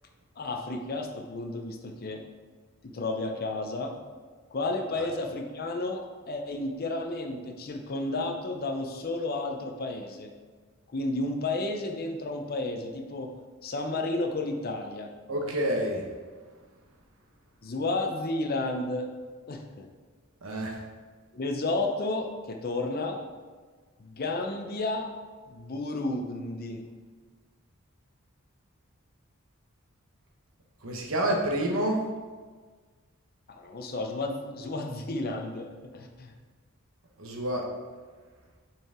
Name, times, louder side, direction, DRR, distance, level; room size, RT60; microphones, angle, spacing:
voice 1, 0.4-2.2 2.8-3.9 4.5-10.3 10.9-13.3 13.6-15.1 17.6-19.1 19.5-19.9 21.3-23.2 24.0-25.1 25.5-26.8 33.5-36.3, left 2 dB, 45° left, 3 dB, 0.6 m, -32 dB
voice 2, 15.3-16.0 20.4-20.7 30.8-32.0 37.2-37.7, right 1 dB, 70° right, 0 dB, 1.1 m, -28 dB
6.0 x 4.5 x 3.7 m, 1.4 s
head